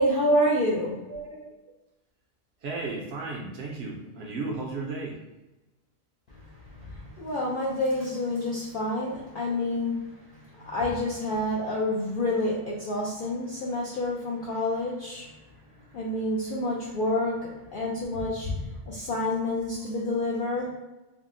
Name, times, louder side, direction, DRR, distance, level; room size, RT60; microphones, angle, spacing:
voice 1, 0.0-1.0 6.9-9.9 10.5-15.3 15.9-18.6 18.9-20.7, left 1 dB, 65° left, -5 dB, 0.5 m, -28 dB
voice 2, 1.1-1.4 2.6-5.2, right 3 dB, 65° right, -1 dB, 0.7 m, -34 dB
3.4 x 2.0 x 2.5 m, 1.0 s
omnidirectional pair, 1.4 m